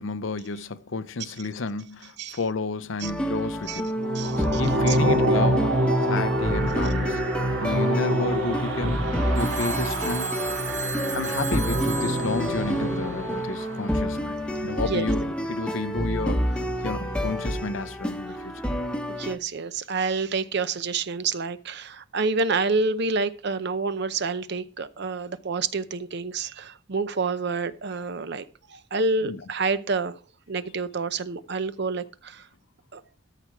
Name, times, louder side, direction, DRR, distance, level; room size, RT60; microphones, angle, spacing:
voice 1, 0.0-3.9 4.4-7.2 7.6-9.0 9.4-10.4 11.1-18.7 29.2-29.4, left 3 dB, 70° left, 0.6 m, -31 dB
sound 1, 3.0-19.3, equal, 5° left, 0.9 m, -29 dB
sound 2, 4.0-14.1, right 1 dB, 75° right, 2.2 m, -26 dB
voice 2, 4.1-5.0 14.8-15.1 19.1-28.4 28.7-30.1 30.5-32.4 32.9-33.0, right 4 dB, 55° right, 0.7 m, -28 dB
Telephone, 9.4-13.6, right 5 dB, 40° right, 1.4 m, -35 dB
13.0 x 5.8 x 4.7 m
head